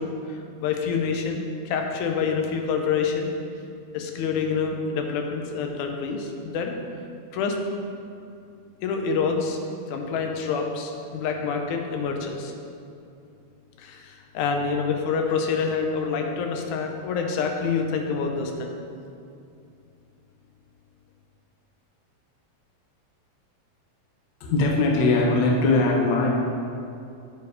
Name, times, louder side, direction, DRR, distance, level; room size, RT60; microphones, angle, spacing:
voice 1, 0.0-3.3 3.9-6.8 7.3-7.6 8.8-9.6 9.9-12.5 13.8-18.7, left 5 dB, 85° left, 3 dB, 2.2 m, -27 dB
voice 2, 24.4-26.3, left 2 dB, 65° left, -1 dB, 1.1 m, -20 dB
8.6 x 4.7 x 4.8 m, 2.5 s
omnidirectional pair, 3.4 m